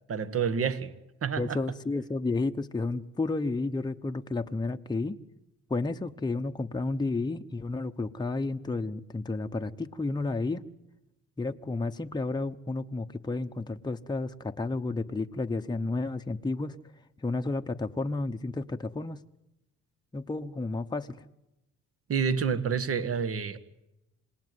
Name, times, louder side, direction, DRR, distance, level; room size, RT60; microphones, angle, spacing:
voice 1, 0.1-0.9 1.2-1.6 22.1-23.6, right 6 dB, 50° right, 1.8 m, -28 dB
voice 2, 1.4-5.2 5.7-10.6 11.4-16.8 17.2-19.2 20.1-21.2, left 3 dB, 15° left, 1.0 m, -31 dB
27.5 x 19.0 x 9.6 m
cardioid pair, 90°, 30 cm